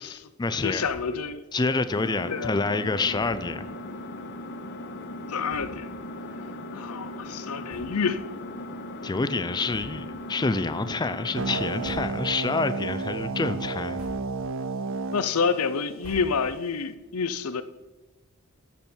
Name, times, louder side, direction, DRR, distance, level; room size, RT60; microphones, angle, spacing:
voice 1, 0.0-0.8 1.5-3.6 9.0-14.0, left 3 dB, 20° left, 0.4 m, -27 dB
voice 2, 0.6-1.4 2.3-2.5 5.3-5.9 6.7-8.2 15.1-17.6, left 5 dB, 90° left, 0.7 m, -28 dB
sound 1, 0.8-1.3 1.6-1.7 2.0-2.1 3.1-3.6 4.3-4.4 5.1-5.2 5.4-6.0 6.5-6.7 7.6-8.3 8.6-8.8 9.6-10.2 10.7-11.1 11.6-12.5 12.9-13.3 13.7-14.6 14.9-16.8, equal, 85° right, 3.7 m, -48 dB
Engine, 1.9-11.9, left 1 dB, 55° left, 0.9 m, -38 dB
sound 2, 11.4-16.4, right 3 dB, 60° right, 0.6 m, -32 dB
13.5 x 7.0 x 4.5 m
head